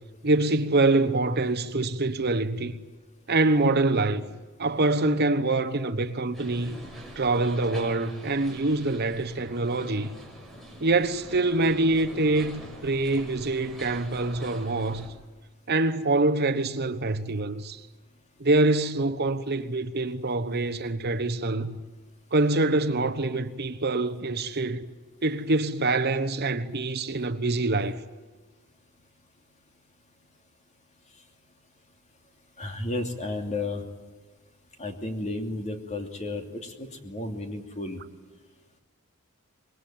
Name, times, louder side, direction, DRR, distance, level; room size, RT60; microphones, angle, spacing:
voice 1, 0.2-2.7 3.3-4.3 4.6-6.7 7.2-10.1 10.8-15.1 15.7-17.8 18.4-21.8 22.3-24.8 25.2-28.0, right 2 dB, 45° right, 1.1 m, -25 dB
sound 1, 6.3-15.1, right 1 dB, ahead, 6.1 m, -44 dB
voice 2, 32.6-33.8 34.8-38.0, left 2 dB, 30° left, 2.8 m, -33 dB
25.5 x 22.0 x 9.2 m
head